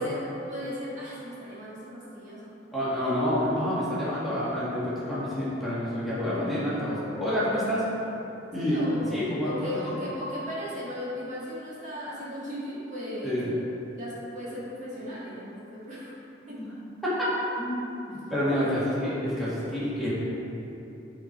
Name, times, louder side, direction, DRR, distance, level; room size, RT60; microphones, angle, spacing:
voice 1, 0.0-2.5 8.6-13.4 14.0-16.1 16.5-16.6 18.5-18.7, equal, 40° right, -8 dB, 1.9 m, -36 dB
voice 2, 2.7-7.9 8.5-8.8 9.1-9.9 13.2-13.5 17.0-17.3 17.6-17.8 18.1-20.1, equal, ahead, -11 dB, 1.9 m, -28 dB
10.5 x 4.4 x 4.6 m, 3.0 s
head